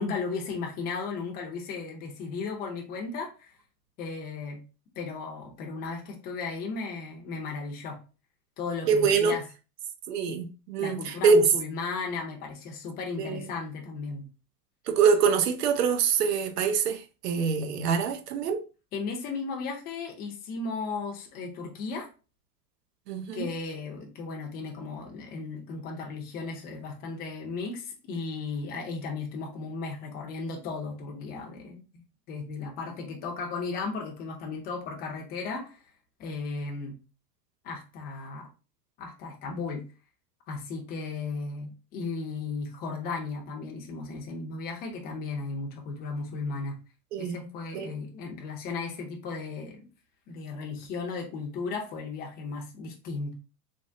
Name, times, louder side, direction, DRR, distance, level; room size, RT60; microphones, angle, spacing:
voice 1, 0.0-3.5 4.0-4.6 5.0-8.0 8.6-9.4 10.3-10.4 10.8-14.3 18.9-22.1 23.3-31.8 32.3-35.8 36.2-37.0 37.6-38.5 39.0-39.8 40.5-46.8 47.2-49.9 50.3-53.3, left 4 dB, 20° left, 0.5 m, -35 dB
voice 2, 8.9-9.4 10.1-11.5 13.2-13.5 14.9-18.6 23.1-23.5 47.1-47.4 47.7-47.9, right 5 dB, 80° right, 0.7 m, -25 dB
3.4 x 2.0 x 2.6 m
supercardioid pair, 135°, 47 cm